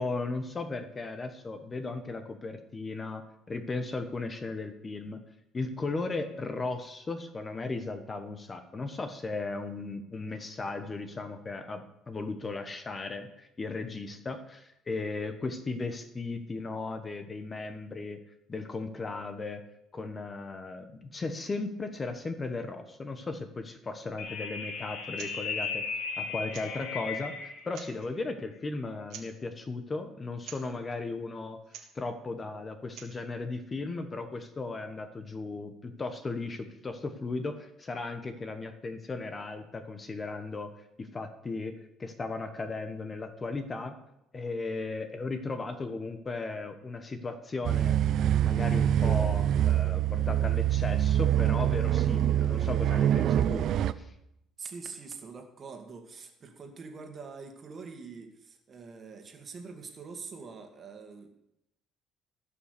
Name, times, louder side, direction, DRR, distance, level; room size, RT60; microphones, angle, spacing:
voice 1, 0.0-5.2 5.5-18.2 18.5-19.6 19.9-31.6 31.9-40.7 41.0-43.9 44.3-48.0 48.4-53.7 54.0-54.1, left 3 dB, 25° left, 8 dB, 1.1 m, -36 dB
sound 1, 24.2-27.7, left 4 dB, 80° left, 2.3 m, -36 dB
sound 2, 25.1-25.4 25.6-25.7 26.5-26.9 27.6-28.1 29.1-29.4 30.4-30.7 31.6-32.0 32.8-33.2, right 9 dB, 75° right, 1.8 m, -46 dB
sound 3, 47.6-53.9, right 11 dB, 60° right, 0.5 m, -25 dB
voice 2, 54.6-61.3, right 5 dB, 35° right, 4 dB, 2.0 m, -44 dB
16.0 x 5.9 x 6.7 m, 0.82 s
cardioid pair, 115°, 0 cm